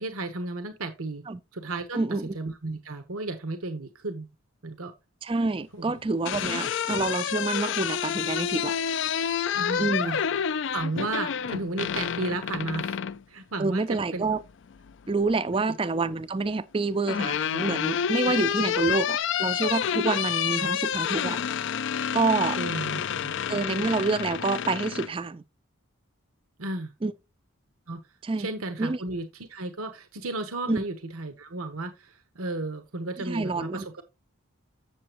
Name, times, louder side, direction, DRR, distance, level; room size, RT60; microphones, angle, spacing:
voice 1, 0.0-1.2 1.5-2.0 2.3-4.3 4.6-4.9 5.7-5.9 6.6-6.7 9.5-10.3 10.7-13.0 13.3-13.8 14.1-14.2 15.5-15.6 18.2-18.7 20.6-20.7 22.6-23.3 26.6-26.9 27.9-28.0 28.4-34.0, right 2 dB, 80° right, 1.1 m, -34 dB
voice 2, 1.9-2.4 5.2-8.7 9.8-10.2 13.6-14.4 15.1-21.4 22.1-22.6 23.5-25.4 27.0-27.1 28.2-28.5 28.8-29.0 30.7-30.8 33.3-34.0, right 3 dB, 25° right, 0.4 m, -27 dB
sound 1, 6.0-13.2 14.7-15.4 16.6-25.1, left 8 dB, 55° left, 0.4 m, -29 dB
8.4 x 6.9 x 3.0 m
head